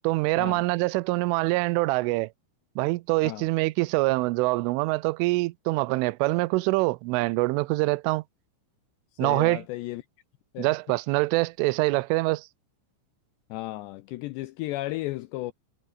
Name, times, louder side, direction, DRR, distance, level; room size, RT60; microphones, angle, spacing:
voice 1, 0.0-2.3 2.8-8.2 9.2-9.6 10.6-12.5, right 23 dB, 85° right, 3.2 m, -25 dB
voice 2, 9.2-10.0 10.5-10.7 13.5-15.5, left 18 dB, 80° left, 2.6 m, -34 dB
omnidirectional pair, 5.6 m